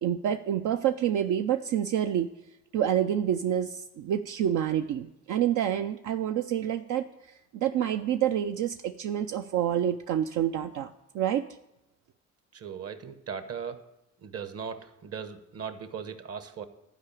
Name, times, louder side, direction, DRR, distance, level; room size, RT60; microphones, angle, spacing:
voice 1, 0.0-2.3 2.7-7.1 7.5-11.5, right 10 dB, 80° right, 7 dB, 0.6 m, -28 dB
voice 2, 12.5-13.8 14.2-16.7, right 6 dB, 55° right, 9 dB, 1.2 m, -38 dB
12.0 x 4.9 x 8.3 m, 0.87 s
cardioid pair, 90°, 30 cm